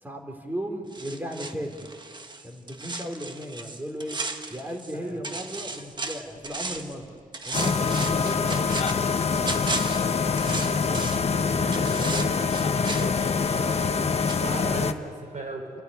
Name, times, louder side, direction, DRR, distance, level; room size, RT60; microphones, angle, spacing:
voice 1, 0.0-1.9 2.4-4.2 4.5-7.1 7.4-9.2 11.3-11.7, equal, 10° right, 3 dB, 3.1 m, -36 dB
sound 1, 0.9-5.0 5.2-7.0 7.3-11.3 11.7-14.0 14.3-14.4, right 3 dB, 30° right, 1.3 m, -35 dB
voice 2, 4.9-5.3 11.3-12.5 12.7-13.9 14.3-15.8, right 2 dB, 55° right, 2 dB, 5.5 m, -37 dB
sound 2, 7.5-14.9, left 5 dB, 45° left, 0.9 m, -25 dB
29.5 x 15.0 x 9.6 m, 2.2 s
wide cardioid pair, 130°, 15 cm